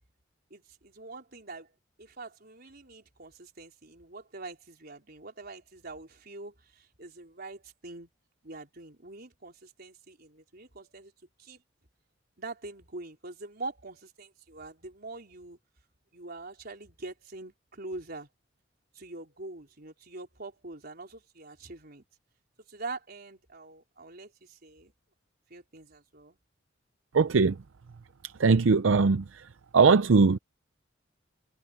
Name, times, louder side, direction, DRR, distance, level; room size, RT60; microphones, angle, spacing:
voice 1, 0.5-1.7 2.0-8.1 8.4-11.1 11.4-11.6 12.4-15.6 16.1-18.3 18.9-22.0 22.7-24.9 25.5-26.4, right 2 dB, 55° right, 4.2 m, -44 dB
voice 2, 27.1-27.5 28.4-29.2 29.7-30.4, right 4 dB, 80° right, 0.6 m, -20 dB
head